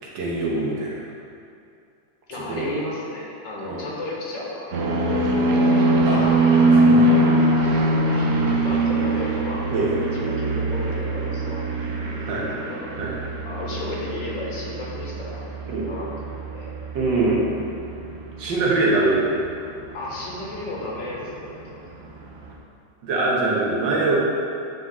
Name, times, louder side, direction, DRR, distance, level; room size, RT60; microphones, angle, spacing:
voice 1, 0.2-1.0 2.3-2.7 3.6-3.8 6.1-6.2 6.8-7.3 9.7-9.9 12.3-12.5 12.9-13.1 15.7-15.9 17.0-17.5 18.4-19.2 23.0-24.2, right 2 dB, 80° right, -4 dB, 1.8 m, -23 dB
voice 2, 2.3-5.2 5.5-6.3 8.0-8.3 8.6-9.7 10.1-11.7 12.3-12.9 13.4-15.5 15.9-16.1 16.5-16.8 19.9-22.2, left 2 dB, 75° left, -4 dB, 1.8 m, -34 dB
sound 1, 4.7-21.7 22.0-22.5, right 1 dB, 60° right, 0.8 m, -23 dB
8.4 x 3.9 x 3.7 m, 2.5 s
omnidirectional pair, 2.0 m